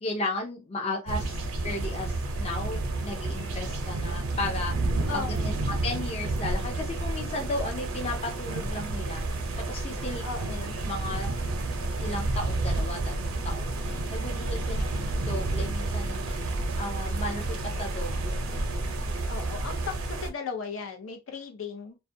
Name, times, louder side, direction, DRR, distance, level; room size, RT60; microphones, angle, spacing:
voice 1, 0.0-5.5 5.8-9.3 9.6-10.2 10.8-11.4 12.0-14.8 15.1-16.5 16.8-18.5, left 2 dB, 30° left, 0.5 m, -35 dB
sound 1, 1.1-20.3, right 2 dB, 90° right, 0.6 m, -30 dB
voice 2, 5.1-5.6 10.2-10.8 14.7-15.1 19.3-22.0, left 5 dB, 75° left, 0.7 m, -37 dB
2.3 x 2.1 x 2.6 m
head